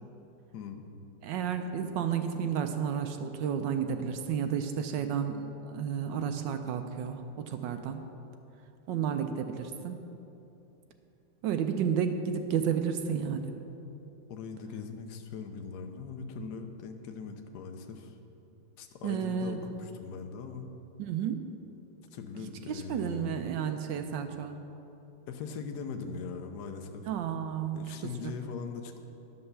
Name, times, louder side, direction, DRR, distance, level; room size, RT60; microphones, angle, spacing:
voice 1, 0.5-0.8 14.3-18.2 18.8-20.7 22.1-23.4 25.3-27.1 27.7-29.0, left 5 dB, 65° left, 5 dB, 1.2 m, -40 dB
voice 2, 1.2-8.0 8.9-10.1 11.4-13.5 19.0-19.7 21.0-21.4 22.3-24.6 27.1-28.3, right 7 dB, 75° right, 7 dB, 1.2 m, -32 dB
11.0 x 5.5 x 6.8 m, 2.9 s
omnidirectional pair, 2.2 m